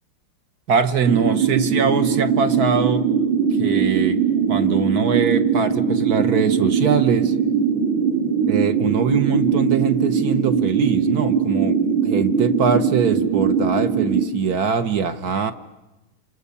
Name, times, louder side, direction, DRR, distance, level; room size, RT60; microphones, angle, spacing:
voice 1, 0.7-3.1 3.6-4.2 4.5-7.3 8.4-15.5, right 6 dB, 55° right, 1.5 m, -22 dB
sound 1, 1.1-14.3, right 6 dB, 90° right, 3.5 m, -20 dB
29.5 x 27.0 x 6.9 m
omnidirectional pair, 2.3 m